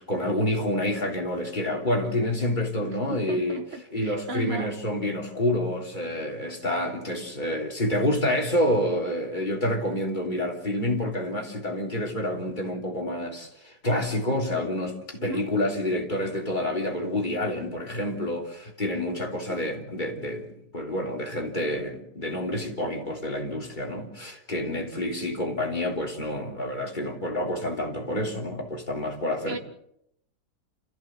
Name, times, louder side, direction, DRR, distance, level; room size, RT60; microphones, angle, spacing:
voice 1, 0.0-3.6 3.9-20.5 20.7-29.6, left 1 dB, 30° left, 3.5 m, -28 dB
voice 2, 2.8-4.7 15.2-15.5 19.5-19.6 29.5-29.6, right 1 dB, 40° right, 2.3 m, -36 dB
29.0 x 15.0 x 7.6 m
omnidirectional pair, 1.7 m